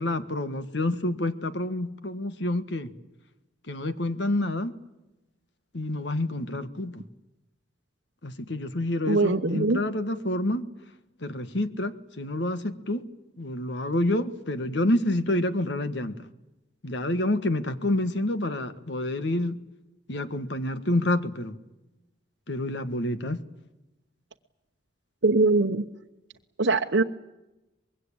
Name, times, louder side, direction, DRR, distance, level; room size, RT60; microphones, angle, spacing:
voice 1, 0.0-2.9 3.7-4.7 5.7-7.0 8.2-10.6 11.2-13.0 13.4-16.1 16.8-19.6 20.1-21.6 22.5-23.4, left 1 dB, 70° left, 11 dB, 1.5 m, -28 dB
voice 2, 9.1-9.8 25.2-25.8 26.6-27.0, right 3 dB, 70° right, 1 dB, 1.1 m, -22 dB
25.0 x 21.5 x 8.8 m, 0.99 s
head